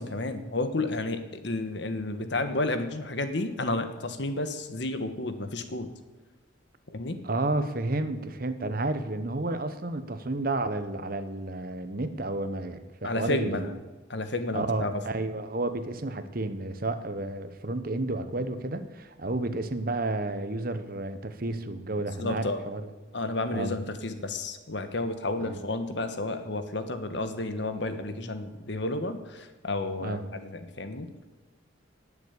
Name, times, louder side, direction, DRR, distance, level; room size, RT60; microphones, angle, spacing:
voice 1, 0.0-5.9 6.9-7.2 13.0-13.7 14.1-14.9 22.2-22.6 23.1-31.1, left 2 dB, 60° left, 9 dB, 1.4 m, -31 dB
voice 2, 7.2-13.8 14.5-22.9 23.5-23.7 25.4-25.6 30.0-30.3, right 2 dB, 50° right, 10 dB, 1.1 m, -31 dB
19.0 x 7.3 x 8.4 m, 1.2 s
head